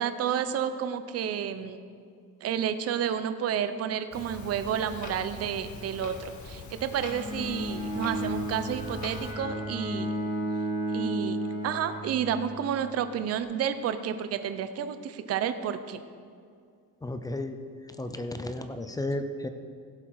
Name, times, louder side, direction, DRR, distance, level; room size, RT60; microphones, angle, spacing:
voice 1, 0.0-1.8 2.4-10.1 10.9-11.4 11.6-16.0, right 8 dB, 40° right, 10 dB, 0.7 m, -30 dB
Clock, 4.1-9.3, left 3 dB, 55° left, 1.6 m, -43 dB
Bowed string instrument, 7.0-12.8, right 1 dB, 15° right, 1.4 m, -33 dB
voice 2, 17.0-17.6 18.0-19.5, left 1 dB, 10° left, 8 dB, 0.5 m, -33 dB
16.0 x 7.6 x 4.8 m, 2.2 s
cardioid pair, 160°, 36 cm